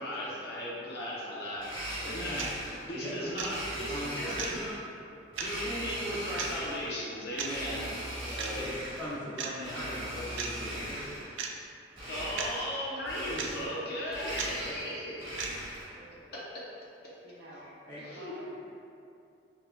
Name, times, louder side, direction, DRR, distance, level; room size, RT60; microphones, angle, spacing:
voice 1, 0.0-4.7 5.4-8.7 12.1-15.4 18.0-18.5, equal, 55° left, -6 dB, 0.8 m, -37 dB
Domestic sounds home sounds, 1.6-2.9 3.4-4.8 5.3-6.9 7.3-9.2 9.6-11.3 11.9-12.8 13.0-13.8 14.1-15.9, right 1 dB, 30° right, 1.2 m, -39 dB
sound 1, 2.4-2.5 3.4-3.5 4.4-4.5 5.4-5.5 6.4-6.5 7.4-7.5 8.4-8.5 9.4-9.5 10.4-10.5 11.4-11.5 12.4-12.5 13.4-13.5 14.4-14.5 15.4-15.5, right 6 dB, 90° right, 0.4 m, -35 dB
voice 2, 3.9-4.4 8.2-11.1 17.9-18.0, equal, 15° left, -11 dB, 1.2 m, -40 dB
voice 3, 15.9-16.3 17.2-17.7 18.0-18.5, right 1 dB, 55° right, -4 dB, 0.6 m, -50 dB
5.6 x 2.8 x 2.2 m, 2.6 s
head